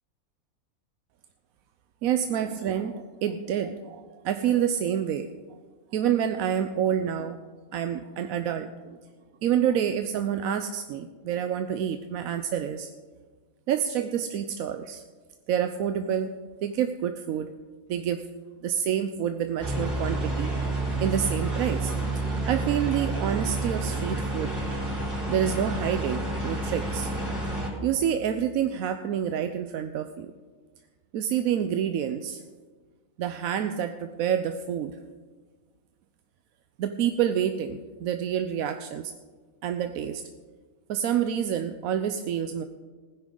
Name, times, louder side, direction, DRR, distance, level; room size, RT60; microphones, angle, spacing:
voice 1, 2.0-5.3 5.9-7.4 7.7-9.0 9.4-12.9 13.7-15.0 15.5-17.5 17.9-18.3 18.6-20.5 21.0-24.6 25.3-27.1 27.8-30.3 31.1-32.4 33.2-35.0 36.8-39.1 39.6-40.2 40.9-42.6, right 9 dB, 75° right, 8 dB, 1.0 m, -28 dB
sound 1, 19.6-27.7, right 2 dB, 55° right, 5.2 m, -29 dB
19.0 x 10.5 x 3.8 m, 1.4 s
omnidirectional pair, 1.5 m